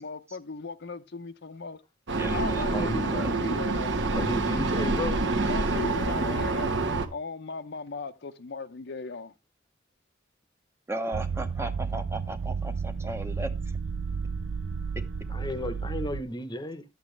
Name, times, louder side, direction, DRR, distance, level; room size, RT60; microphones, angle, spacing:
voice 1, 0.0-1.8 2.3-3.9 5.5-6.8 7.1-9.3, left 4 dB, 60° left, 0.7 m, -37 dB
Vehicle, 2.1-7.1, right 3 dB, 65° right, 1.2 m, -27 dB
voice 2, 2.2-3.3 10.9-13.8, right 1 dB, 15° right, 0.8 m, -36 dB
voice 3, 2.7-3.1 4.1-5.3 15.3-16.8, left 1 dB, 20° left, 0.9 m, -33 dB
sound 1, 11.1-16.2, right 5 dB, 90° right, 0.6 m, -32 dB
11.0 x 8.4 x 3.2 m
head